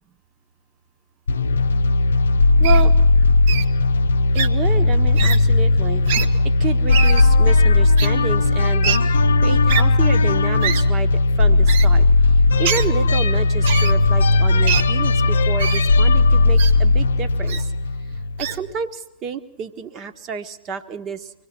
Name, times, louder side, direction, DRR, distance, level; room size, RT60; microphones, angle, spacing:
sound 1, 1.3-18.6, left 3 dB, 70° left, 0.6 m, -16 dB
voice 1, 2.6-3.2 4.3-9.0 9.4-12.1 12.6-17.7 18.4-21.3, right 6 dB, 35° right, 10 dB, 1.5 m, -30 dB
Wild animals, 2.6-2.8 3.5-3.7 4.3-4.5 5.2-5.4 6.0-6.3 6.9-7.3 8.0-8.1 8.8-9.0 9.7-9.8 10.6-10.8 11.7-11.9 12.6-12.9 13.6-13.9 14.7-14.8 15.6-15.8 16.6-16.7 17.5-17.6 18.4-18.6, right 8 dB, 55° right, 1.1 m, -24 dB
24.5 x 18.0 x 6.0 m, 0.91 s
figure-of-eight pair, 90°, 0 cm